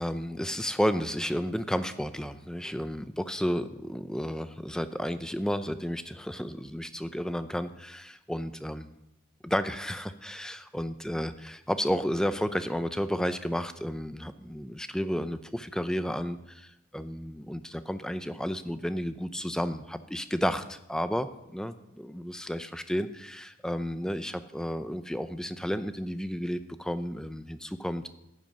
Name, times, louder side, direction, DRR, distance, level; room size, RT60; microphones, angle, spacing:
voice 1, 0.0-9.0 9.4-28.1, equal, 5° left, 11 dB, 0.6 m, -32 dB
14.5 x 10.5 x 5.4 m, 0.87 s
head